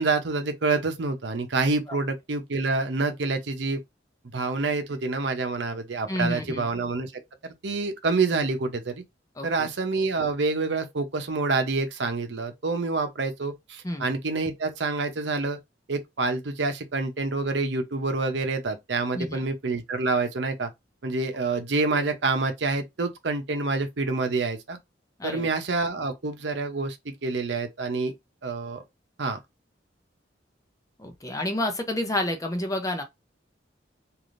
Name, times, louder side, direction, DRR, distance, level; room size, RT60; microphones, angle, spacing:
voice 1, 0.0-3.8 4.3-7.1 7.4-9.0 9.4-15.6 15.9-20.7 21.0-24.8 25.2-28.1 28.4-28.8 29.2-29.4, right 3 dB, 70° right, 0.7 m, -27 dB
voice 2, 6.1-6.6 9.4-9.7 13.8-14.1 19.1-19.4 25.2-25.5 31.0-33.0, left 1 dB, 20° left, 0.6 m, -29 dB
3.4 x 2.5 x 2.5 m
head